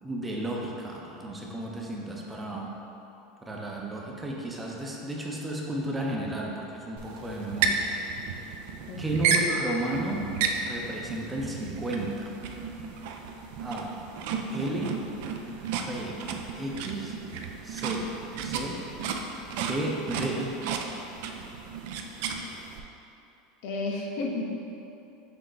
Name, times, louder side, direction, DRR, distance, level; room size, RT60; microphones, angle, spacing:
voice 1, 0.0-2.8 3.4-8.3 9.0-10.3 10.6-12.3 13.6-14.0 14.5-15.0 15.7-16.2 16.6-17.1 17.6-18.1 18.4-18.8 19.6-20.5, right 1 dB, 15° right, -2 dB, 0.5 m, -33 dB
sound 1, 7.0-22.8, right 5 dB, 70° right, 0.3 m, -33 dB
voice 2, 8.9-9.5 23.6-24.7, left 2 dB, 70° left, -1 dB, 0.6 m, -33 dB
5.9 x 2.1 x 3.9 m, 2.9 s
supercardioid pair, 125°, 0 cm